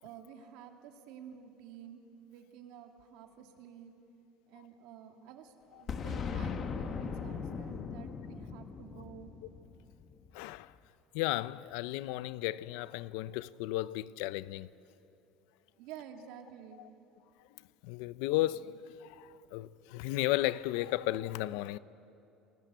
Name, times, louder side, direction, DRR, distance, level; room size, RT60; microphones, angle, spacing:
voice 1, 0.0-2.0 2.3-3.9 4.5-9.3 15.8-16.8, right 9 dB, 70° right, 2.4 m, -51 dB
Boom, 5.9-10.6, left 6 dB, 30° left, 1.3 m, -39 dB
voice 2, 10.3-10.7 11.1-14.7 16.8-16.9 17.8-18.8 19.2-21.8, left 16 dB, 80° left, 0.6 m, -34 dB
29.0 x 20.0 x 8.2 m
cardioid pair, 170°, 0 cm